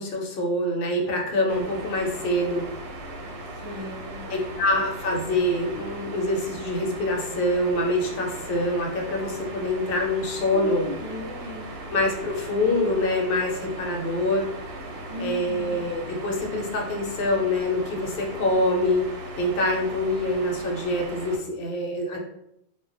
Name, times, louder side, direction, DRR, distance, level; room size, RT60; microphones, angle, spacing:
voice 1, 0.0-2.6 4.3-10.8 11.9-14.5 15.2-19.0 19.4-22.2, left 1 dB, 65° left, 1 dB, 0.8 m, -25 dB
Steal Works Industrial Pump, 1.5-21.4, right 2 dB, 70° right, 0.8 m, -38 dB
voice 2, 3.6-4.9 10.5-11.9 15.1-15.8, equal, 40° right, -2 dB, 0.4 m, -37 dB
2.2 x 2.1 x 3.7 m, 0.79 s
omnidirectional pair, 1.1 m